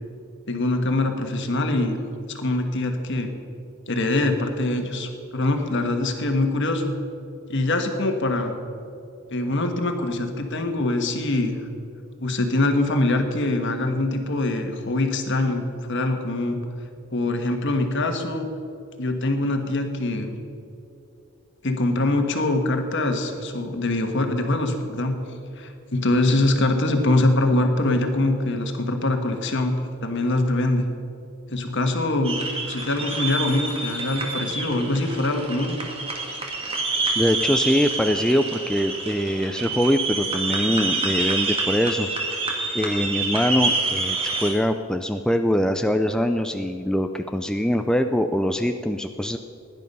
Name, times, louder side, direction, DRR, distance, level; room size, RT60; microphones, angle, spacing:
voice 1, 0.5-2.0 2.3-3.3 3.9-6.9 7.5-8.5 9.3-11.6 12.2-16.6 17.1-18.5 19.0-20.3 21.6-30.8 31.5-32.4 32.7-35.7, left 2 dB, 60° left, 5 dB, 1.5 m, -23 dB
sound 1, 32.2-44.5, right 3 dB, 25° right, 1.8 m, -27 dB
voice 2, 37.2-42.1 42.7-49.4, equal, 5° left, 6 dB, 0.4 m, -23 dB
16.5 x 11.0 x 5.4 m, 2.6 s
head